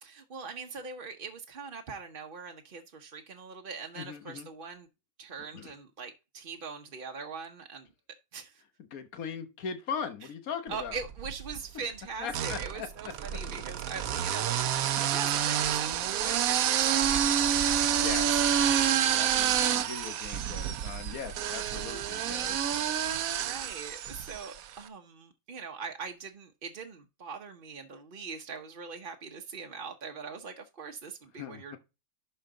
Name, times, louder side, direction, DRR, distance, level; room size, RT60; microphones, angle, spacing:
voice 1, 0.0-4.9 5.2-7.9 8.3-8.6 10.7-19.3 22.1-22.4 23.4-31.8, right 5 dB, 45° right, 0.9 m, -42 dB
voice 2, 4.0-4.5 5.5-5.7 8.9-11.0 12.2-12.9 18.0-18.5 19.1-22.7 31.4-31.8, left 6 dB, 90° left, 1.6 m, -39 dB
sound 1, 10.9-11.6 12.3-24.6, right 9 dB, 80° right, 1.1 m, -28 dB
11.5 x 4.4 x 3.8 m
omnidirectional pair, 1.5 m